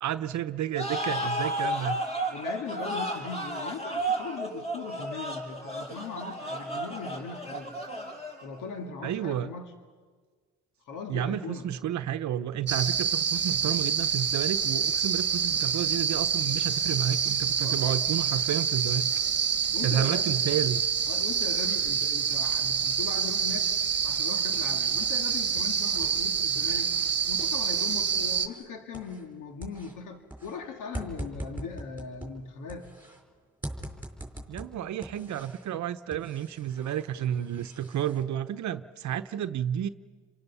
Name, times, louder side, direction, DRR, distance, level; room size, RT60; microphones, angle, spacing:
voice 1, 0.0-2.0 9.0-9.5 11.1-19.1 19.8-20.8 34.5-39.9, right 10 dB, 70° right, 11 dB, 0.9 m, -31 dB
sound 1, 0.7-8.6, right 1 dB, 20° left, 6.8 m, -33 dB
voice 2, 2.3-7.8 8.4-9.7 10.8-11.7 13.3-13.4 17.6-17.8 19.7-20.3 21.1-23.7 24.0-26.9 27.3-32.9, left 5 dB, 85° left, 5 dB, 2.1 m, -39 dB
sound 2, 12.7-28.5, right 7 dB, 35° right, 1.4 m, -27 dB
sound 3, 24.4-25.2 25.5-29.4 29.6-33.2 33.6-35.7 36.1-38.2, right 1 dB, 5° right, 5.0 m, -43 dB
29.5 x 23.5 x 6.9 m, 1.5 s
cardioid pair, 90°, 30 cm